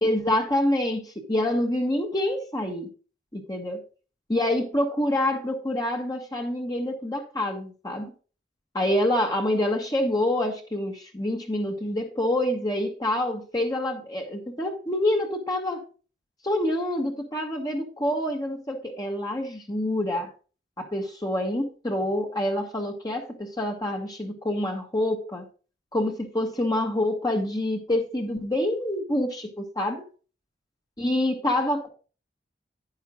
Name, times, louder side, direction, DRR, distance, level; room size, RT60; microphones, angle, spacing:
voice 1, 0.0-2.9 3.3-3.8 4.3-8.1 8.7-15.8 16.4-20.3 20.8-25.5 25.9-30.0 31.0-31.9, left 1 dB, 20° left, 2 dB, 1.7 m, -27 dB
11.5 x 10.0 x 2.4 m, 0.36 s
head